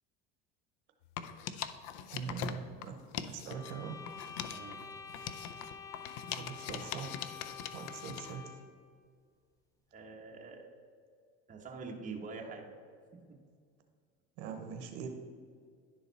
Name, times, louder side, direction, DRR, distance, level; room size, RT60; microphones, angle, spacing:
sound 1, 1.0-3.7 4.1-8.4, left 9 dB, 70° left, 0.5 m, -42 dB
voice 1, 2.1-3.0 3.3-4.0 6.4-7.3 7.7-8.5 14.4-15.1, right 7 dB, 70° right, 5 dB, 0.9 m, -42 dB
sound 2, 3.5-8.8, left 6 dB, 10° left, 0.5 m, -48 dB
voice 2, 4.5-4.8 9.9-10.7 11.5-12.7 13.3-13.4, right 4 dB, 25° right, 0 dB, 1.1 m, -45 dB
11.0 x 4.0 x 4.1 m, 2.1 s
supercardioid pair, 120°, 30 cm